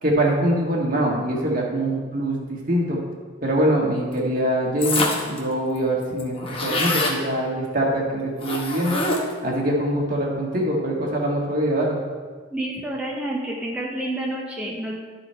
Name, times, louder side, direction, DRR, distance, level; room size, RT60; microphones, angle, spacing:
voice 1, 0.0-3.0 3.4-6.3 6.6-9.0 9.4-12.0, right 1 dB, 45° right, -2 dB, 1.6 m, -23 dB
sound 1, 4.8-5.4 5.8-5.9 6.0-7.2 8.4-9.4, left 2 dB, 30° left, 0.9 m, -25 dB
voice 2, 12.5-14.9, right 1 dB, 5° right, -4 dB, 0.7 m, -29 dB
12.0 x 4.0 x 4.4 m, 1.5 s
head